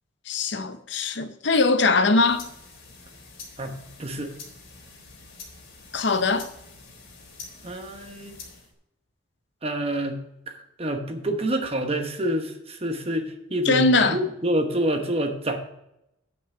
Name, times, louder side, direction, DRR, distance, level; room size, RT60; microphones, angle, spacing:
voice 1, 0.3-2.5 5.9-6.5 13.7-14.2, left 3 dB, 60° left, 0.7 m, -21 dB
sound 1, 2.0-8.7, left 4 dB, 85° left, 3.0 m, -46 dB
voice 2, 3.6-4.3 7.6-8.4 9.6-15.6, right 1 dB, 30° right, 1.0 m, -28 dB
9.2 x 5.4 x 6.0 m
head